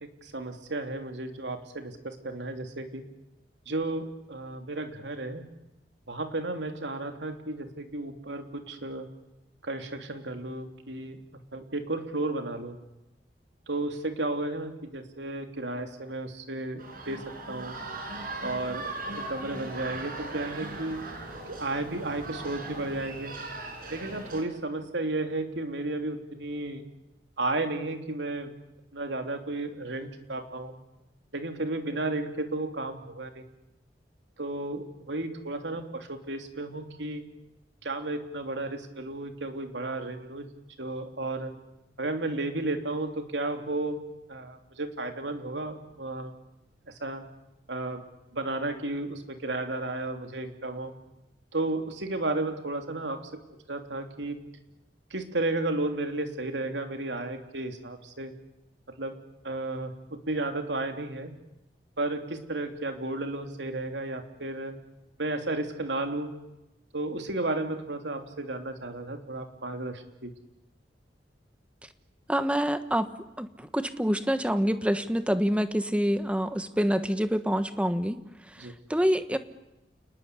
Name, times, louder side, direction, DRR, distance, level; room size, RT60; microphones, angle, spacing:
voice 1, 0.0-3.0 3.7-5.4 6.1-9.1 9.6-11.2 11.5-12.8 13.7-17.8 18.4-18.9 19.3-21.0 21.5-23.3 23.9-26.8 27.4-28.5 28.9-30.7 31.3-33.4 34.4-37.2 37.8-40.5 40.8-41.5 42.0-44.0 44.3-46.3 47.0-47.2 47.7-48.0 48.3-50.9 51.5-53.2 53.7-54.4 55.1-58.3 59.0-59.1 59.4-61.3 62.0-64.7 65.2-66.3 66.9-70.3 78.6-78.7, right 2 dB, 90° right, 6 dB, 3.2 m, -33 dB
sound 1, 16.8-24.4, right 2 dB, 55° right, 5.8 m, -39 dB
voice 2, 72.3-73.1 73.4-78.2 78.5-79.4, equal, 5° right, 10 dB, 1.3 m, -26 dB
29.5 x 20.0 x 8.4 m, 0.96 s
head